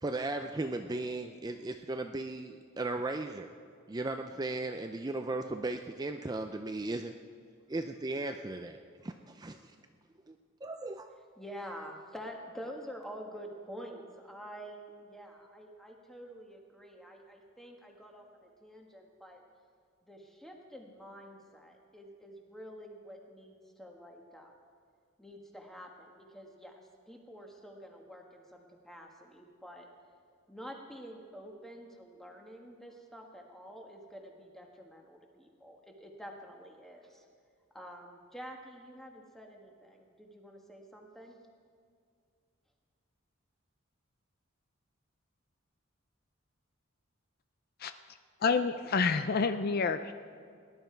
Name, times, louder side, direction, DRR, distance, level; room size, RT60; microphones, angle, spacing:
voice 1, 0.0-3.5 3.9-7.1 7.7-8.8 9.0-9.7 10.3-10.4 10.6-11.1, right 2 dB, 20° right, 6 dB, 0.4 m, -36 dB
voice 2, 11.4-19.4 20.0-24.5 25.2-26.8 27.0-29.9 30.5-37.3 37.7-41.4, equal, ahead, 1 dB, 1.4 m, -48 dB
voice 3, 48.4-50.1, left 5 dB, 50° left, 10 dB, 0.5 m, -28 dB
18.5 x 11.0 x 4.5 m, 2.2 s
head